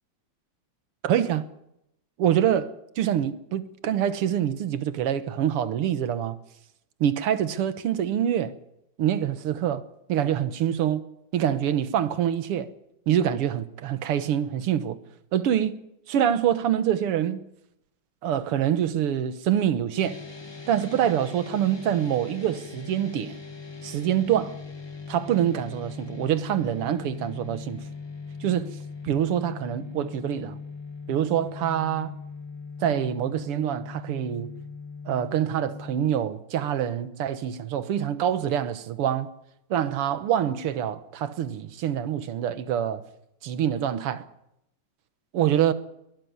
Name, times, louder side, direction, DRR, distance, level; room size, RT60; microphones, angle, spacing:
voice 1, 1.0-1.5 2.2-6.4 7.0-8.5 9.0-11.0 11.3-12.7 13.1-15.0 15.3-15.8 16.1-17.4 18.2-20.2 20.7-23.4 23.8-24.5 25.1-27.8 28.4-28.8 29.0-30.6 31.1-32.1 32.8-34.5 35.1-39.3 39.7-43.0 43.4-44.2 45.3-45.7, right 10 dB, 90° right, 2.1 m, -25 dB
sound 1, 20.0-36.0, left 4 dB, 20° left, 0.7 m, -40 dB
22.0 x 13.0 x 9.6 m
omnidirectional pair, 2.4 m